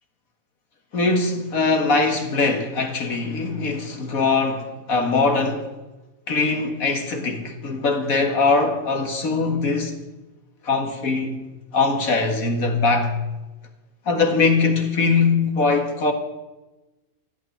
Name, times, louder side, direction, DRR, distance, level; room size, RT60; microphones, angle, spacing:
voice 1, 0.9-5.7 6.3-10.0 10.6-11.4 11.7-13.1 14.1-16.1, left 3 dB, 80° left, 2.3 m, -21 dB
15.0 x 8.7 x 9.6 m
omnidirectional pair, 1.5 m